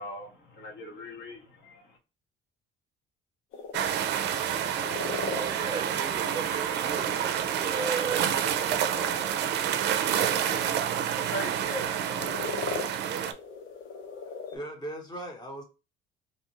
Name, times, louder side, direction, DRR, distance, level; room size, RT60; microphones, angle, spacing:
voice 1, 0.0-2.0 11.1-12.9, left 1 dB, 55° left, 0.9 m, -41 dB
sound 1, 3.5-14.6, left 5 dB, 80° left, 0.8 m, -41 dB
sound 2, 3.7-13.3, right 9 dB, 55° right, 0.4 m, -28 dB
voice 2, 5.3-8.3 10.0-10.6, right 5 dB, 20° right, 0.7 m, -35 dB
voice 3, 14.5-15.6, right 1 dB, 20° left, 0.9 m, -38 dB
2.6 x 2.4 x 2.9 m
cardioid pair, 145°, 21 cm